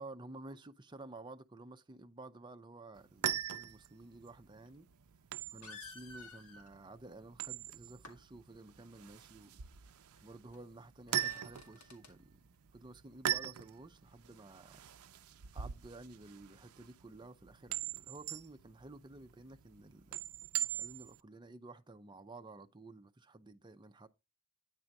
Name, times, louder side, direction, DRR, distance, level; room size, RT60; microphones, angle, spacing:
voice 1, 0.0-4.9 5.5-9.6 10.2-12.4 12.7-14.9 15.5-20.2 20.7-24.1, right 2 dB, 20° right, 0.6 m, -52 dB
sound 1, 2.9-21.2, right 11 dB, 75° right, 0.5 m, -42 dB
sound 2, 4.7-4.8 5.6-6.7 7.9-8.2 10.2-10.3 10.5-10.6 11.1-12.1, left 3 dB, 90° left, 2.1 m, -52 dB
9.7 x 3.9 x 4.6 m
head